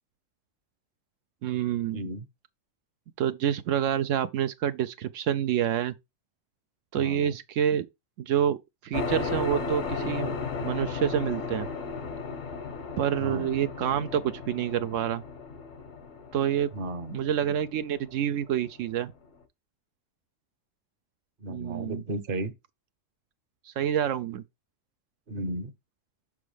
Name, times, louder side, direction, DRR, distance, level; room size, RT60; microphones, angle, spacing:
voice 1, 1.4-2.0 3.2-5.9 6.9-7.9 8.2-8.6 8.8-10.3 10.6-11.7 13.0-15.2 16.3-16.7 17.1-19.1 21.5-22.0 23.6-24.4, right 9 dB, 80° right, 0.9 m, -27 dB
voice 2, 1.9-2.3 6.9-7.4 13.2-13.6 16.7-17.2 21.4-22.5 25.3-25.7, right 1 dB, 50° right, 1.0 m, -34 dB
sound 1, 8.9-19.1, left 4 dB, 85° left, 1.4 m, -35 dB
6.2 x 6.0 x 3.3 m
omnidirectional pair, 1.3 m